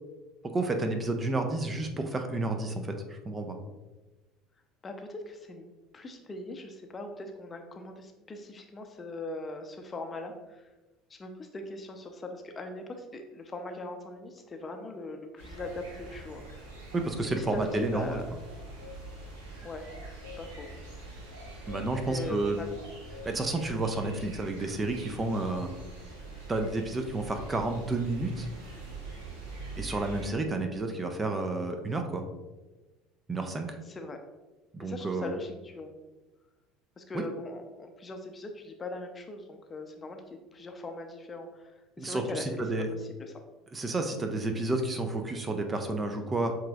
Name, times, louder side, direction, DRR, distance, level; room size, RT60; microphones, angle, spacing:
voice 1, 0.4-3.6 16.9-18.2 21.7-22.6 23.2-25.7 26.5-28.5 29.8-32.2 33.3-33.8 34.7-35.3 37.1-37.2 42.0-42.9 43.7-46.6, right 2 dB, 25° right, 6 dB, 0.6 m, -31 dB
voice 2, 4.8-5.6 5.9-10.6 11.1-16.4 17.4-17.6 17.9-18.3 19.6-19.9 20.4-20.7 22.0-22.7 33.9-34.2 34.8-35.9 37.0-40.2 40.5-41.7 42.0-43.4, left 2 dB, 25° left, 5 dB, 0.6 m, -40 dB
sound 1, 15.4-30.3, right 2 dB, 75° right, 1.3 m, -44 dB
7.4 x 3.0 x 2.4 m, 1.1 s
figure-of-eight pair, 65°, 0 cm